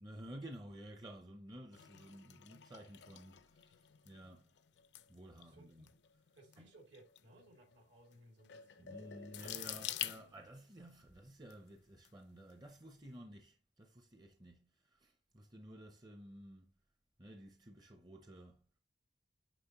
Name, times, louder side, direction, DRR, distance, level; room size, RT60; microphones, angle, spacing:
voice 1, 0.0-4.5 5.1-5.9 6.6-6.7 8.8-16.7 17.2-18.6, right 1 dB, 20° right, 0.6 m, -53 dB
sound 1, 1.7-10.9 11.5-12.1 12.5-12.8, left 11 dB, 70° left, 0.5 m, -48 dB
voice 2, 5.3-5.9 6.3-9.0, right 1 dB, 80° right, 2.3 m, -62 dB
9.1 x 3.9 x 2.9 m
head